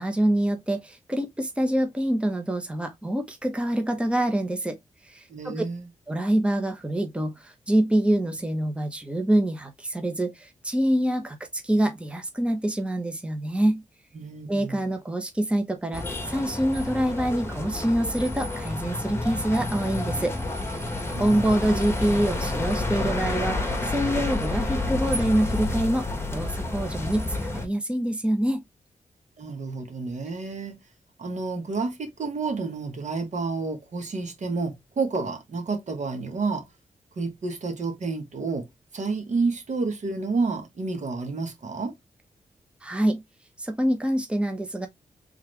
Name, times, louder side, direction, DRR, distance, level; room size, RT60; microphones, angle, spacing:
voice 1, 0.0-4.8 5.0-5.6 6.1-13.8 14.5-20.3 20.7-20.9 21.2-28.6 42.8-43.2 43.6-44.9, right 1 dB, 10° right, 0.9 m, -26 dB
voice 2, 5.3-5.9 14.1-14.8 21.1-21.4 29.4-30.7 31.2-36.6 37.2-38.7 38.9-41.9, right 4 dB, 60° right, 1.5 m, -30 dB
sound 1, 15.9-27.7, left 2 dB, 20° left, 1.5 m, -29 dB
3.6 x 3.3 x 3.2 m
cardioid pair, 65°, 13 cm